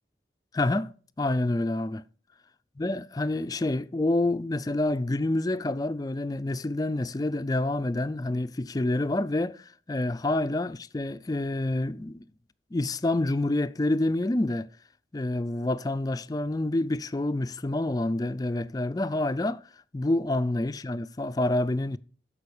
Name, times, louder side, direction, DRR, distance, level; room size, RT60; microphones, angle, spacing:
voice 1, 0.5-0.9 1.2-2.0 2.8-12.3 12.7-14.7 15.1-19.6 19.9-22.0, left 2 dB, 20° left, 0.3 m, -27 dB
13.0 x 5.3 x 4.8 m
head